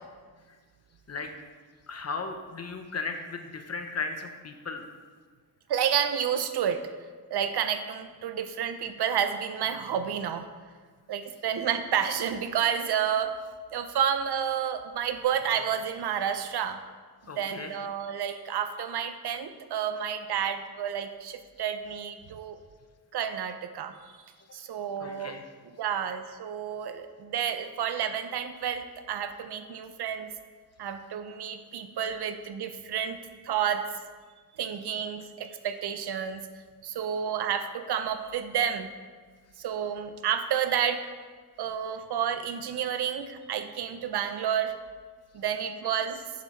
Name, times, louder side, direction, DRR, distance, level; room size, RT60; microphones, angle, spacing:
voice 1, 1.9-4.8 17.3-17.7 25.0-25.4, left 4 dB, 40° left, 6 dB, 0.9 m, -36 dB
voice 2, 5.7-6.8 7.3-10.5 11.1-13.3 13.7-16.8 17.4-22.6 23.1-24.2 24.5-25.4 25.6-30.3 30.8-33.2 33.4-34.0 34.6-36.5 36.8-38.9 39.6-41.1 41.6-44.7 45.3-46.2, right 8 dB, 85° right, 9 dB, 0.7 m, -30 dB
11.0 x 6.9 x 3.2 m, 1.5 s
wide cardioid pair, 120°, 38 cm